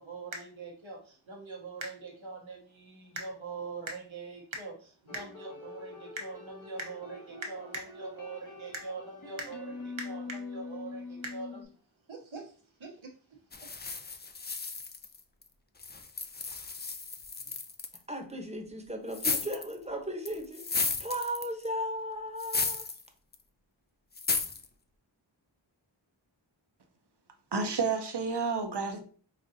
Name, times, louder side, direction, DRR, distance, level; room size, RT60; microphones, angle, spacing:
voice 1, 0.0-11.7 12.1-12.5 12.8-13.1 13.6-13.7, right 3 dB, 85° right, 1.0 m, -42 dB
sound 1, 5.1-11.6, left 3 dB, 45° left, 1.0 m, -44 dB
sound 2, 13.5-15.4 15.8-18.0 19.1-19.7 20.3-21.7 22.4-23.0 23.3-23.4 24.2-24.7, left 4 dB, 25° left, 0.3 m, -34 dB
voice 2, 18.1-22.8, equal, 15° right, 0.9 m, -36 dB
voice 3, 27.5-29.0, right 4 dB, 60° right, 0.8 m, -30 dB
5.1 x 2.5 x 2.7 m
wide cardioid pair, 50°, 46 cm